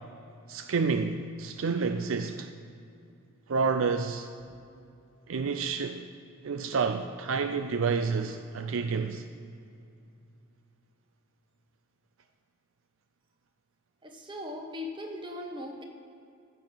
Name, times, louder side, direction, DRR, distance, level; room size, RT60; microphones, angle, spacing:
voice 1, 0.5-2.5 3.5-4.3 5.3-6.1 6.4-9.2, right 5 dB, 65° right, 0.5 m, -29 dB
voice 2, 14.0-15.8, left 1 dB, 20° right, 1.2 m, -39 dB
15.0 x 6.9 x 5.9 m
head